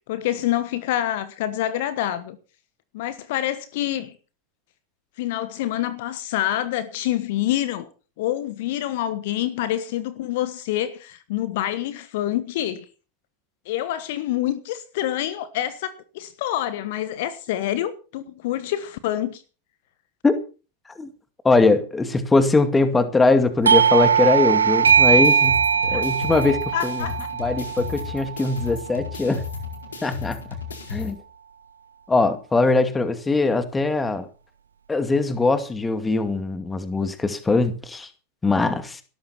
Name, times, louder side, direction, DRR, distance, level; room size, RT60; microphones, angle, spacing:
voice 1, 0.0-2.4 2.9-4.1 5.2-7.9 8.2-12.9 13.6-19.4 25.9-26.0 26.7-27.3, left 13 dB, 50° left, 1.3 m, -27 dB
voice 2, 21.4-27.1 27.4-29.4 30.0-30.4 30.9-31.2 32.1-34.3 34.9-38.1 38.4-39.0, left 3 dB, 10° left, 2.3 m, -21 dB
Doorbell, 23.6-28.9, right 7 dB, 70° right, 0.7 m, -20 dB
sound 1, 24.9-31.1, left 6 dB, 70° left, 4.5 m, -34 dB
18.5 x 13.0 x 4.4 m
figure-of-eight pair, 90°, 0 cm